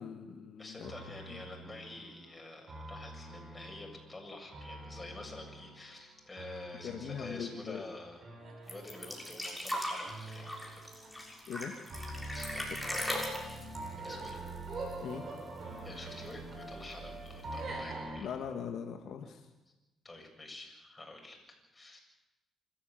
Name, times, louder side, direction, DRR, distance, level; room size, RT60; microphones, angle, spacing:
voice 1, 0.0-1.4 6.8-7.8 11.5-11.8 12.3-12.4 15.0-15.3 18.2-19.5, left 7 dB, 70° left, 4 dB, 1.7 m, -41 dB
voice 2, 0.6-8.2 8.6-10.8 12.3-13.4 14.0-14.4 15.8-18.3 20.0-22.0, left 2 dB, 20° left, 1 dB, 7.7 m, -48 dB
sound 1, 0.8-18.2, right 2 dB, 45° right, 7.2 m, -45 dB
sound 2, 8.7-15.1 15.4-15.5 15.8-16.5 17.3-17.4, left 1 dB, ahead, 6.7 m, -39 dB
25.5 x 14.0 x 9.2 m, 1.0 s
cardioid pair, 90°, 0 cm